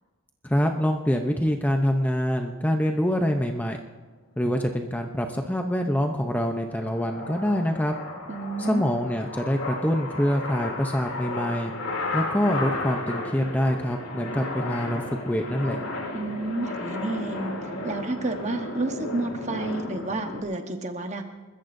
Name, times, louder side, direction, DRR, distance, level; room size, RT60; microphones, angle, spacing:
voice 1, 0.4-3.8 4.4-7.9 8.6-11.7 12.1-15.8, equal, 5° left, 3 dB, 0.7 m, -25 dB
sound 1, 5.1-20.4, left 2 dB, 70° left, 3.0 m, -34 dB
voice 2, 8.3-8.8 16.1-21.2, right 2 dB, 30° right, 5 dB, 1.2 m, -30 dB
29.5 x 14.0 x 2.7 m, 1.3 s
head